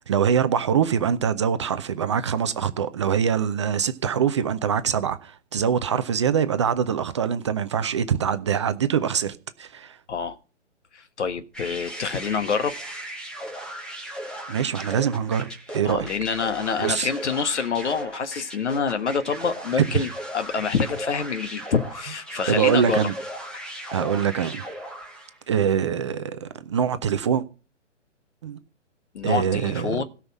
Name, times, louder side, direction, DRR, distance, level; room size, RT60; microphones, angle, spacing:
voice 1, 0.1-10.0 14.5-16.1 16.8-17.1 19.9-20.0 22.5-23.1 23.9-24.7 25.5-27.5 28.4-28.6 29.2-30.0, right 8 dB, 25° right, 0.5 m, -24 dB
voice 2, 10.9-12.8 15.8-23.1 23.5-23.6 29.1-30.0, left 5 dB, 65° left, 1.6 m, -27 dB
sound 1, 11.5-25.4, right 1 dB, ahead, 1.2 m, -37 dB
16.5 x 5.7 x 6.1 m
figure-of-eight pair, 135°, 37 cm